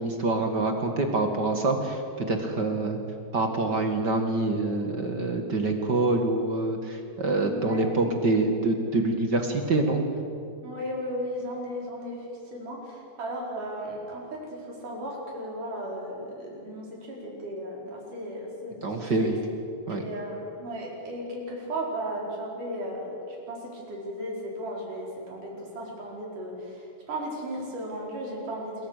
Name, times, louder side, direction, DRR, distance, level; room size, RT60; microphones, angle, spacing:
voice 1, 0.0-3.0 3.3-10.0 18.8-19.3 19.9-20.1, right 2 dB, 35° right, 4 dB, 2.1 m, -26 dB
voice 2, 7.4-7.9 10.6-12.2 12.5-14.4 14.6-19.3 19.9-28.9, equal, 65° right, -2 dB, 6.6 m, -35 dB
27.0 x 23.0 x 6.7 m, 2.5 s
omnidirectional pair, 3.9 m